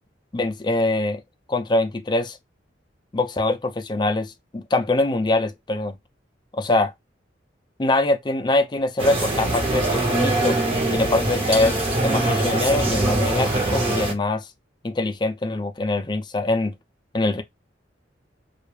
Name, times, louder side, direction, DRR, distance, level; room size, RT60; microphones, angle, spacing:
voice 1, 0.3-1.2 1.5-2.4 3.1-6.0 6.5-6.9 7.8-10.6 11.0-14.5 14.8-16.7 17.1-17.4, left 2 dB, 25° left, 0.4 m, -23 dB
sound 1, 9.0-14.1, right 2 dB, 30° right, 0.7 m, -22 dB
2.3 x 2.0 x 3.0 m
head